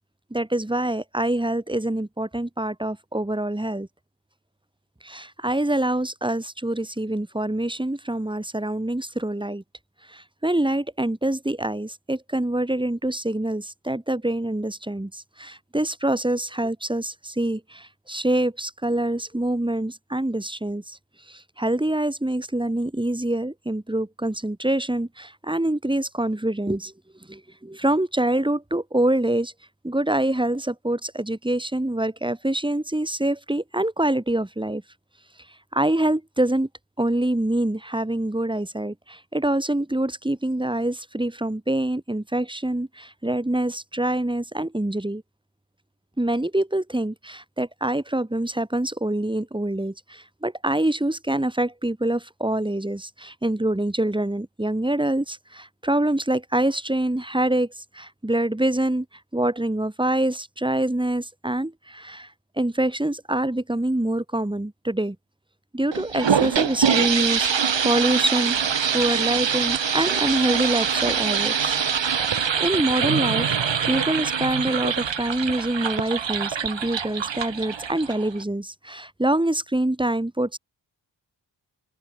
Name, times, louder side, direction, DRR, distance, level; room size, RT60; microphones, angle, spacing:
voice 1, 0.3-3.9 5.0-9.6 10.1-21.0 21.3-26.9 27.3-29.5 29.8-34.8 35.7-36.7 37.0-45.2 46.2-59.0 59.3-62.3 62.6-65.2 65.7-67.5 67.8-68.5 68.9-71.8 72.6-73.5 73.9-80.6, right 1 dB, 10° right, 6.6 m, -25 dB
sound 1, 65.9-78.4, right 7 dB, 80° right, 7.9 m, -24 dB
open air
wide cardioid pair, 140°, 44 cm